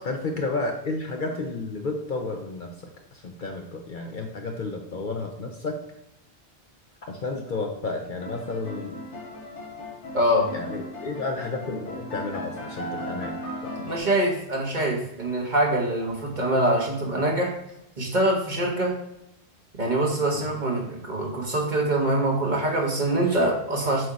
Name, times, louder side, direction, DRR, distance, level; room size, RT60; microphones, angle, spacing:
voice 1, 0.0-2.7 3.1-5.8 7.1-9.0 10.5-13.4 13.6-13.9 20.3-20.5, left 3 dB, 50° left, 3 dB, 0.8 m, -31 dB
sound 1, 8.2-14.0, left 1 dB, 85° left, 1.6 m, -37 dB
voice 2, 10.1-10.5 13.9-17.5 18.0-18.9 19.8-24.1, right 1 dB, 40° right, -1 dB, 1.4 m, -24 dB
7.7 x 2.7 x 4.8 m, 0.81 s
omnidirectional pair, 1.2 m